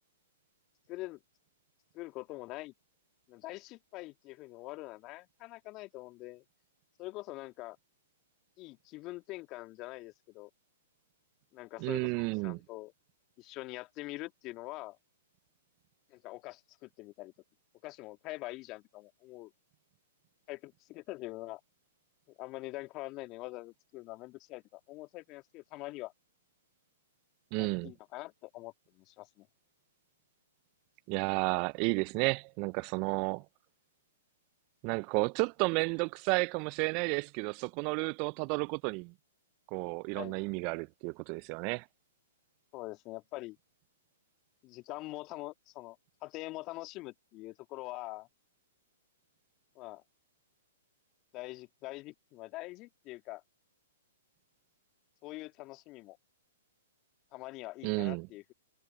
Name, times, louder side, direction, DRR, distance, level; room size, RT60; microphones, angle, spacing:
voice 1, 0.9-1.2 1.9-2.7 3.3-6.4 7.0-7.8 8.6-10.5 11.5-12.9 13.4-15.0 16.1-17.3 17.8-19.5 20.5-21.6 22.3-26.1 27.6-29.5 40.1-40.5 42.7-43.6 44.6-48.3 49.7-50.0 51.3-53.4 55.2-56.2 57.3-58.5, left 20 dB, 35° left, 1.8 m, -44 dB
voice 2, 11.8-12.6 27.5-27.9 31.1-33.4 34.8-39.1 39.7-41.9 57.8-58.3, right 31 dB, 40° right, 0.4 m, -32 dB
hypercardioid pair, 120°, 0 cm